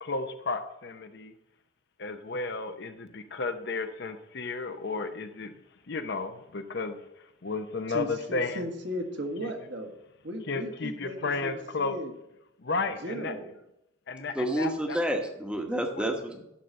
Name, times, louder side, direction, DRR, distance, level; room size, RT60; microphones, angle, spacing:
voice 1, 0.0-1.3 2.0-5.5 5.9-7.0 7.4-8.6 10.5-12.0 12.6-13.3 14.1-15.0, left 3 dB, 55° left, 8 dB, 0.7 m, -33 dB
voice 2, 7.9-9.9 10.2-12.1 13.0-13.5, equal, 55° right, 4 dB, 1.5 m, -36 dB
voice 3, 14.3-16.4, right 1 dB, 5° right, 3 dB, 1.1 m, -29 dB
11.5 x 4.0 x 7.5 m, 0.83 s
head